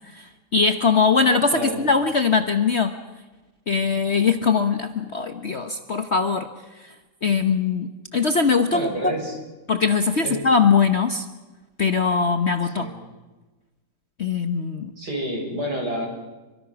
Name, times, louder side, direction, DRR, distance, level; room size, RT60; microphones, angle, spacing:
voice 1, 0.1-2.9 3.7-6.5 6.8-6.9 7.2-9.1 9.7-11.3 11.8-12.9 14.2-14.9, left 5 dB, 45° left, 7 dB, 1.1 m, -21 dB
voice 2, 8.7-9.3 10.2-10.4 12.8-13.0 15.0-16.1, right 1 dB, 60° right, 1 dB, 6.5 m, -28 dB
28.0 x 24.0 x 5.9 m, 1.2 s
omnidirectional pair, 2.0 m